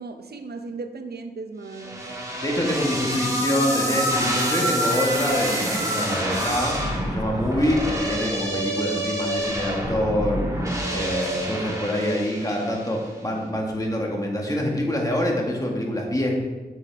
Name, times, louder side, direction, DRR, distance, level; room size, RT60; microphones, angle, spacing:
voice 1, 0.0-2.0 5.8-5.9, right 3 dB, 70° right, 7 dB, 0.8 m, -36 dB
sound 1, 1.7-13.0, right 1 dB, 20° right, 1.9 m, -27 dB
voice 2, 2.4-6.8 7.0-10.4 10.9-16.3, left 1 dB, 20° left, -1 dB, 1.9 m, -25 dB
8.2 x 6.8 x 3.6 m, 1.3 s
wide cardioid pair, 70°, 17 cm